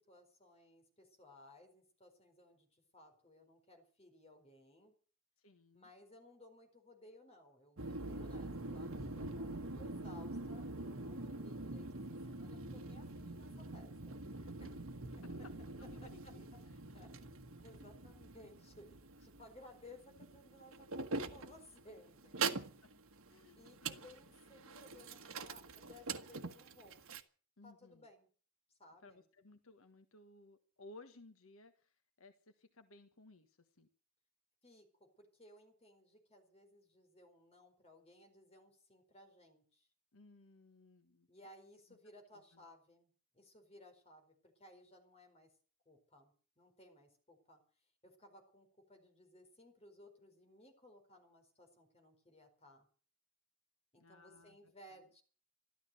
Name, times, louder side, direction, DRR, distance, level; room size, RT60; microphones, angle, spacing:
voice 1, 0.1-4.9 5.7-9.5 9.8-13.9 14.2-14.7 16.0-16.6 16.9-17.3 17.6-22.6 23.6-27.0 27.6-28.3 28.8-29.2 34.6-39.9 41.3-45.5 45.9-47.6 48.0-52.8 53.9-55.2, left 1 dB, 30° left, 5 dB, 4.5 m, -60 dB
voice 2, 5.4-5.9 14.6-14.7 15.7-16.4 22.5-22.9 23.3-24.0 27.6-28.1 29.0-33.9 40.1-41.3 42.3-42.6 54.0-54.6 54.9-55.0, left 2 dB, 70° left, 8 dB, 1.4 m, -60 dB
sound 1, 7.8-27.2, right 3 dB, 70° right, 1.4 m, -44 dB
13.5 x 13.0 x 7.8 m, 0.42 s
head